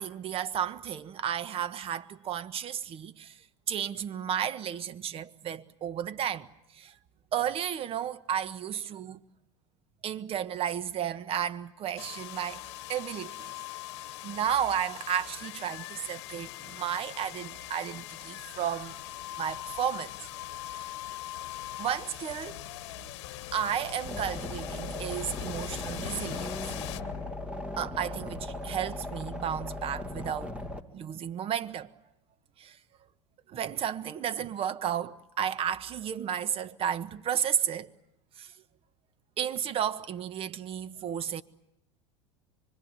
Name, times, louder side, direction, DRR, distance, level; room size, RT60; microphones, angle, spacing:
voice 1, 0.0-3.3 3.7-6.5 6.8-6.9 7.3-9.2 10.0-12.6 12.9-13.5 14.2-18.9 19.4-20.1 20.7-20.8 21.8-22.7 23.5-26.6 27.8-30.6 30.9-31.9 32.6-32.8 33.5-37.9 38.4-38.5 39.4-41.4, right 9 dB, 40° right, 1.4 m, -33 dB
sound 1, 12.0-27.8, left 15 dB, 65° left, 1.2 m, -41 dB
sound 2, 24.0-30.8, left 1 dB, 10° right, 2.6 m, -38 dB
25.5 x 24.5 x 9.2 m
hypercardioid pair, 80°, 15 cm